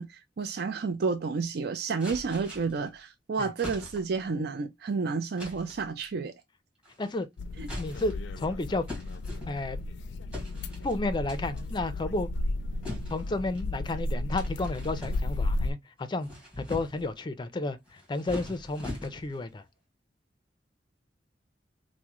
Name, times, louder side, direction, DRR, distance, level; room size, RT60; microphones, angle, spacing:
voice 1, 0.0-6.3 7.6-7.7, right 4 dB, 60° right, 0.4 m, -31 dB
sound 1, 2.0-2.9 3.6-4.2 5.4-5.9 6.8-7.2 7.6-8.3 8.9-9.8 10.3-11.0 11.3-11.7 12.8-13.7 14.3-15.6 16.0-17.1 17.9-19.4, left 1 dB, 5° right, 1.6 m, -42 dB
sound 2, 7.4-15.7, left 2 dB, 90° left, 0.4 m, -34 dB
voice 2, 7.8-8.8 9.5-9.8 10.8-12.3 13.1-16.3 16.6-19.6, left 2 dB, 25° left, 0.4 m, -32 dB
3.5 x 2.1 x 2.9 m
head